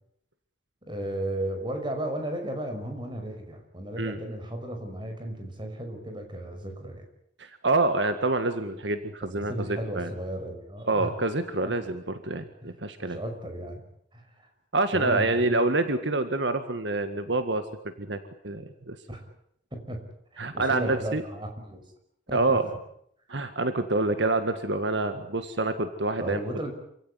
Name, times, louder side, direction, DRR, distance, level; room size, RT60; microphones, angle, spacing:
voice 1, 0.8-7.0 9.3-11.1 11.6-11.7 12.6-12.7 13.1-13.8 14.1-14.5 14.9-15.6 19.1-19.2 19.7-20.0 20.3-21.8 22.3-22.6 26.2-26.7, right 1 dB, 25° right, 5 dB, 5.9 m, -35 dB
voice 2, 7.4-10.1 10.9-13.2 14.7-17.6 18.0-18.2 18.4-19.0 20.4-21.2 22.3-22.6 23.3-26.4, right 2 dB, 75° right, 9 dB, 1.8 m, -27 dB
27.5 x 17.0 x 9.8 m, 0.71 s
head